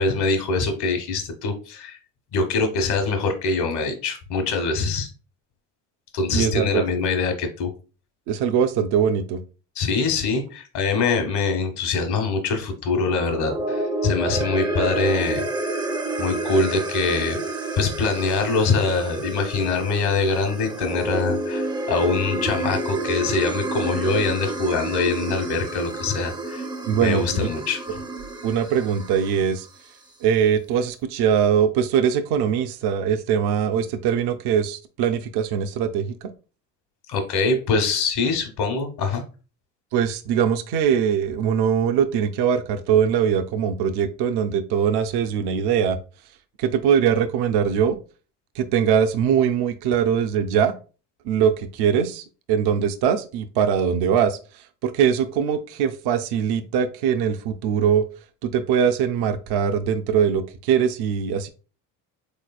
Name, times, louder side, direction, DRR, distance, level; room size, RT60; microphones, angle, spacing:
voice 1, 0.0-2.0 2.3-5.1 6.1-7.7 9.8-15.4 16.2-17.4 17.8-26.7 27.0-27.8 37.1-39.2, left 4 dB, 65° left, 6 dB, 1.1 m, -23 dB
voice 2, 6.3-6.8 8.3-9.4 26.9-27.5 27.9-28.0 28.4-29.7 30.2-36.3 39.9-46.0 46.6-48.0 48.6-50.7 51.2-54.4 54.8-58.0 58.4-61.5, right 8 dB, 70° right, 9 dB, 0.5 m, -22 dB
sound 1, 13.2-29.7, right 2 dB, 10° right, 0.4 m, -29 dB
3.7 x 3.2 x 2.3 m, 0.35 s
supercardioid pair, 75°, 41 cm